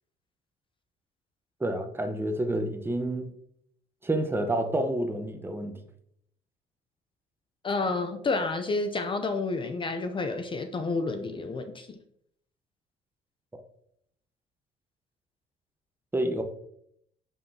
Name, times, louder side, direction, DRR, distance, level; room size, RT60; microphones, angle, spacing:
voice 1, 1.6-3.3 4.0-5.8 16.1-16.4, right 1 dB, 15° right, 0.9 m, -29 dB
voice 2, 7.6-12.0, left 3 dB, 30° left, 0.6 m, -30 dB
7.6 x 5.4 x 2.8 m
cardioid pair, 110°, 17 cm